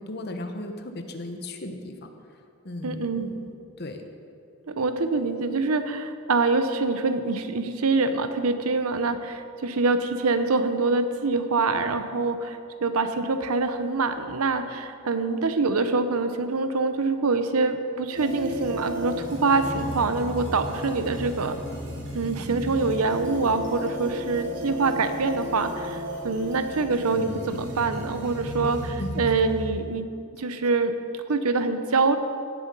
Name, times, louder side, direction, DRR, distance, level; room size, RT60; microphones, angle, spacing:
voice 1, 0.0-2.1 2.6-4.0 28.6-28.7 29.0-29.3, left 1 dB, 45° left, 5 dB, 1.0 m, -36 dB
voice 2, 2.8-3.3 4.7-21.6 22.1-28.8 29.2-30.1 30.4-32.2, right 3 dB, 80° right, 9 dB, 0.8 m, -25 dB
sound 1, 18.1-29.7, equal, 55° right, 2.9 m, -34 dB
17.0 x 7.9 x 5.4 m, 2.5 s
head